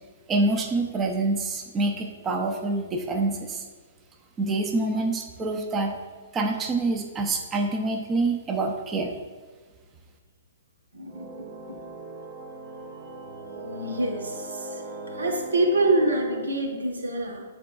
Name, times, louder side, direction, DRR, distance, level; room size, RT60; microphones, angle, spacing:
voice 1, 0.3-3.6 4.4-6.0 6.3-9.1, right 2 dB, 20° right, 3 dB, 0.6 m, -26 dB
voice 2, 10.9-11.5 13.6-14.8 15.1-17.4, right 2 dB, 90° right, 2 dB, 1.2 m, -26 dB
sound 1, 11.1-16.4, equal, 40° right, 1.4 m, -39 dB
9.9 x 4.1 x 2.4 m, 1.4 s
hypercardioid pair, 135°, 0 cm